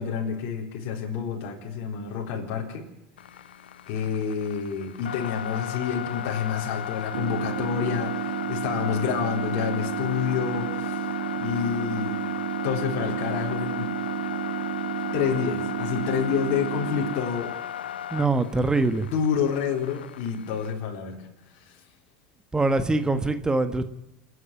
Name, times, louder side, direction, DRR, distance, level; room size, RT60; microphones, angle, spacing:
voice 1, 0.0-2.9 3.9-11.1 11.3-12.2 12.6-13.9 15.1-17.5 19.1-21.2 21.5-21.8, left 7 dB, 55° left, 1 dB, 4.0 m, -28 dB
sound 1, 3.2-20.7, left 10 dB, 85° left, 0.8 m, -36 dB
sound 2, 7.1-17.1, right 12 dB, 80° right, 0.8 m, -31 dB
voice 2, 18.1-19.1 22.5-23.9, right 3 dB, 15° right, 10 dB, 1.4 m, -23 dB
29.0 x 9.9 x 9.0 m, 0.87 s
hypercardioid pair, 85°, 5 cm